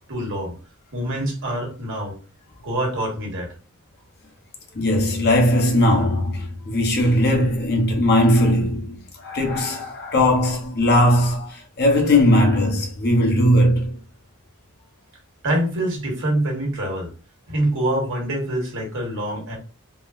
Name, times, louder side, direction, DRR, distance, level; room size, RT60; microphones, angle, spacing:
voice 1, 0.1-0.6 0.9-2.2 2.6-3.5 15.4-17.1 17.5-19.6, right 1 dB, 60° right, 1.3 m, -25 dB
voice 2, 4.7-14.0, left 1 dB, 45° left, 0.7 m, -19 dB
3.6 x 2.1 x 2.5 m
head